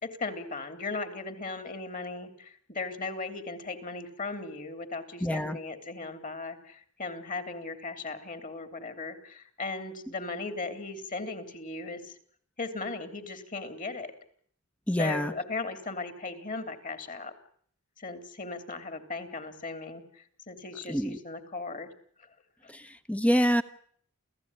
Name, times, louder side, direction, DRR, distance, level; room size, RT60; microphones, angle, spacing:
voice 1, 0.0-12.1 12.6-14.1 15.0-17.3 18.0-21.9 22.2-22.3, left 3 dB, 40° left, 10 dB, 3.3 m, -37 dB
voice 2, 5.2-5.6 14.9-15.3 20.9-21.2 22.7-23.6, equal, 5° left, 12 dB, 1.1 m, -26 dB
29.0 x 15.5 x 9.9 m, 0.62 s
head